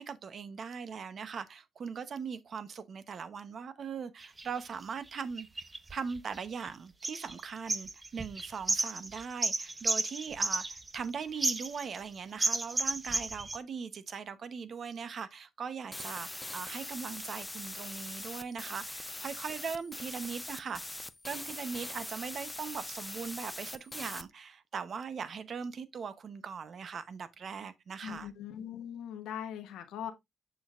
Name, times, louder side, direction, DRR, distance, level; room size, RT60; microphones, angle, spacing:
voice 1, 0.0-5.5 5.9-20.8 21.2-28.3, right 6 dB, 55° right, 0.8 m, -40 dB
sound 1, 4.2-4.5 5.2-6.7 7.0-7.4 7.7-11.1 11.4-12.1 12.4-13.6, right 2 dB, 20° right, 0.9 m, -32 dB
sound 2, 15.9-24.2, left 2 dB, 10° left, 0.6 m, -42 dB
voice 2, 28.0-30.1, left 9 dB, 85° left, 1.0 m, -40 dB
6.8 x 6.1 x 2.5 m
cardioid pair, 85°, 0 cm